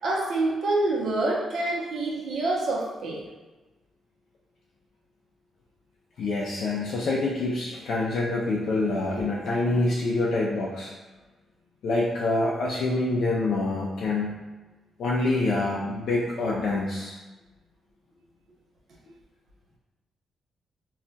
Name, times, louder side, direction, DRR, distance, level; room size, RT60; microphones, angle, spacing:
voice 1, 0.0-3.2 9.2-9.3 9.7-9.8, right 2 dB, 60° right, -4 dB, 0.7 m, -27 dB
voice 2, 6.2-10.9 11.8-14.4 15.0-17.2, left 2 dB, 60° left, -5 dB, 0.4 m, -26 dB
2.3 x 2.2 x 3.9 m, 1.2 s
wide cardioid pair, 165°, 0 cm